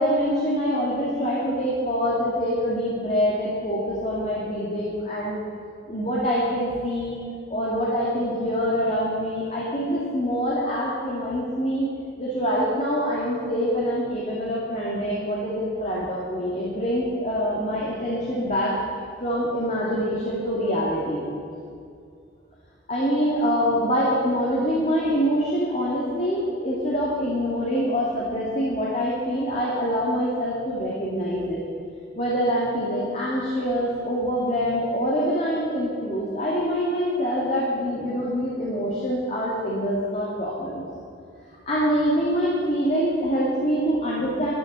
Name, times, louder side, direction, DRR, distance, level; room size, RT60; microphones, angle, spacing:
voice 1, 0.0-5.4 5.9-7.1 7.5-11.9 12.2-18.7 19.2-21.3 22.9-31.6 32.2-40.9 41.7-44.5, equal, 35° left, -6 dB, 2.5 m, -25 dB
13.0 x 11.5 x 7.6 m, 2.3 s
head